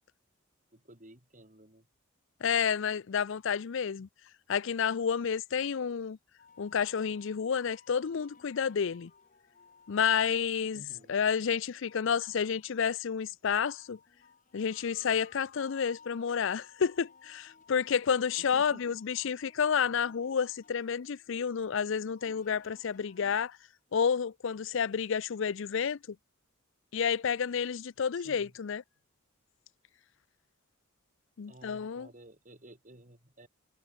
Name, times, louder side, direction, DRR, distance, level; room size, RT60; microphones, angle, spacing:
voice 1, 0.7-1.9 10.7-11.2 18.4-19.0 19.8-19.9 28.1-28.6 31.5-33.5, right 1 dB, 35° right, 5.2 m, -54 dB
voice 2, 2.4-4.1 4.5-6.2 6.6-9.1 9.9-10.8 11.1-14.0 14.5-23.6 23.9-26.2 26.9-28.8 31.4-32.1, left 7 dB, 60° left, 0.5 m, -30 dB
sound 1, 6.4-23.4, left 5 dB, 40° left, 1.7 m, -59 dB
head